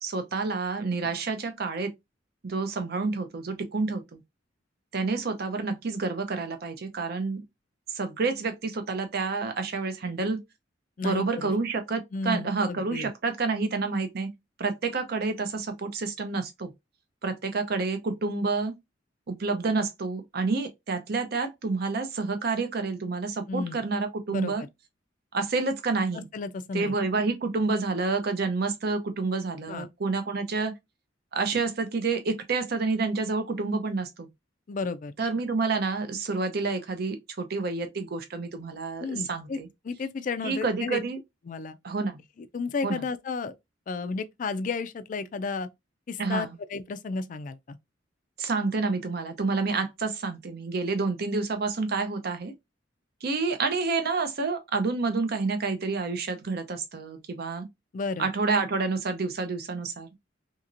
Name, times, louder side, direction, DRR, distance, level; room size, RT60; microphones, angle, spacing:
voice 1, 0.0-1.9 2.4-4.2 4.9-7.4 7.9-10.4 11.0-14.3 14.6-16.7 17.2-18.7 19.3-24.6 25.3-26.3 26.7-30.7 31.3-34.3 35.2-39.7 40.4-41.2 41.8-42.2 42.8-43.0 46.2-46.6 48.4-52.5 53.2-57.7 58.2-60.1, right 4 dB, 55° right, 0.6 m, -29 dB
voice 2, 11.0-11.5 12.1-13.1 23.5-23.8 24.3-24.7 26.1-26.9 29.7-29.9 34.7-35.1 39.0-39.6 39.8-41.0 41.5-41.8 42.4-43.6 43.9-45.7 46.1-47.8 57.9-58.3, left 4 dB, 45° left, 0.3 m, -32 dB
2.9 x 2.8 x 2.5 m
head